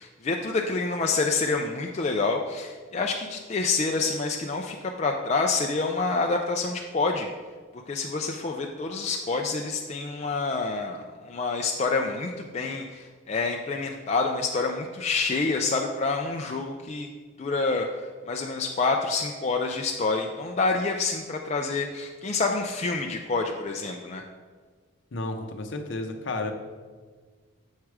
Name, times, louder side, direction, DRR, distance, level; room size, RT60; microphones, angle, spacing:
voice 1, 0.0-7.3 7.7-17.1 17.4-24.2, left 3 dB, 30° left, 2 dB, 0.4 m, -27 dB
voice 2, 25.1-26.5, left 2 dB, 60° left, 6 dB, 0.7 m, -32 dB
7.4 x 4.7 x 4.7 m, 1.5 s
head